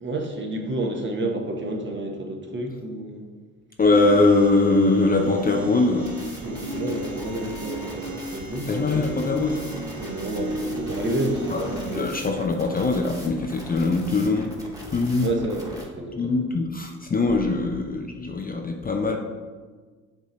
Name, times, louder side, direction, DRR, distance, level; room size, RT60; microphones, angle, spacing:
voice 1, 0.0-3.3 6.4-9.0 10.0-12.3 15.2-16.5, right 2 dB, 30° right, 2 dB, 1.2 m, -30 dB
voice 2, 3.8-6.1 8.7-9.6 11.5-11.6 11.9-14.5 14.9-15.3 16.2-19.2, left 3 dB, 20° left, 2 dB, 0.7 m, -22 dB
sound 1, 3.9-11.9, equal, 50° right, 2.0 m, -34 dB
sound 2, 6.1-15.8, equal, 10° right, 1.7 m, -40 dB
7.3 x 4.1 x 4.0 m, 1.4 s
hypercardioid pair, 50°, 39 cm